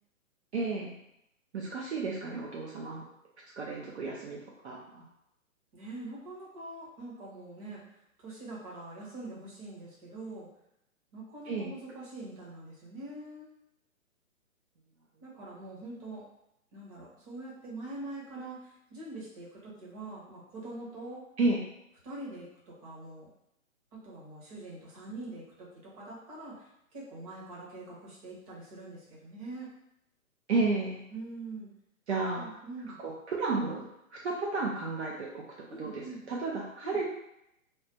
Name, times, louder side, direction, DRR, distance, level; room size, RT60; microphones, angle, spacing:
voice 1, 0.5-0.9 1.5-3.0 3.6-5.0 11.5-11.7 21.4-21.6 30.5-31.0 32.1-32.6 33.0-35.4 35.8-37.1, right 3 dB, 50° right, -3 dB, 0.7 m, -32 dB
voice 2, 5.7-7.8 8.2-10.5 11.1-13.5 15.2-16.2 16.7-21.2 22.0-23.3 23.9-26.7 26.9-29.7 31.1-31.7 32.3-33.0 35.7-36.2 36.8-37.0, right 2 dB, 25° right, -5 dB, 1.0 m, -44 dB
3.2 x 2.1 x 4.2 m, 0.81 s
hypercardioid pair, 150°, 42 cm